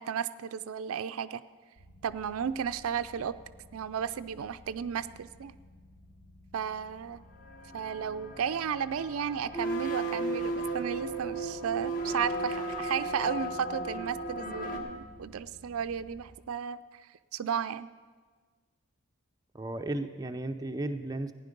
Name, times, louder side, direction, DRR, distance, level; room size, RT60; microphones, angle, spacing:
voice 1, 0.0-1.4 2.0-3.3 3.7-5.5 6.5-7.2 7.7-17.1 17.3-17.9, right 7 dB, 75° right, 13 dB, 0.4 m, -34 dB
sound 1, 1.8-16.2, left 1 dB, 90° left, 3.9 m, -55 dB
sound 2, 7.5-14.8, right 2 dB, 40° left, 1.3 m, -35 dB
voice 2, 19.5-21.3, right 2 dB, 15° right, 5 dB, 0.4 m, -34 dB
15.5 x 9.9 x 5.2 m, 1.5 s
head